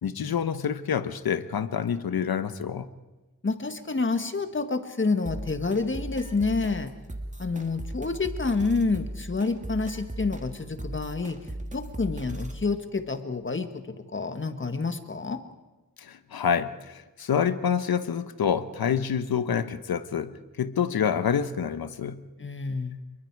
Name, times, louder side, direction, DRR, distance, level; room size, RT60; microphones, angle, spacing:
voice 1, 0.0-2.9 16.0-22.2, left 7 dB, 80° left, 12 dB, 1.2 m, -27 dB
voice 2, 3.4-6.9 7.4-15.4 22.4-23.0, left 3 dB, 35° left, 8 dB, 1.8 m, -28 dB
sound 1, 5.3-12.6, right 1 dB, 20° right, 2.6 m, -37 dB
27.5 x 23.0 x 4.8 m, 1.1 s
wide cardioid pair, 95°, 36 cm